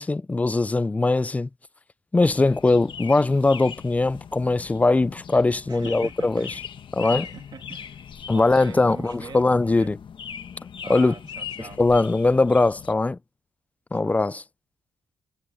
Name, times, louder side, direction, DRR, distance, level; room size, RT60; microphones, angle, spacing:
voice 1, 0.0-1.5 2.1-6.5 6.9-7.3 8.3-10.0 10.9-11.1 11.6-13.2 13.9-14.4, left 3 dB, 15° left, 0.4 m, -21 dB
sound 1, 2.3-12.9, left 7 dB, 50° left, 1.3 m, -40 dB
voice 2, 5.7-6.6 7.0-9.9 10.8-11.8 13.9-14.3, right 6 dB, 45° right, 2.2 m, -43 dB
cardioid pair, 120°, 11 cm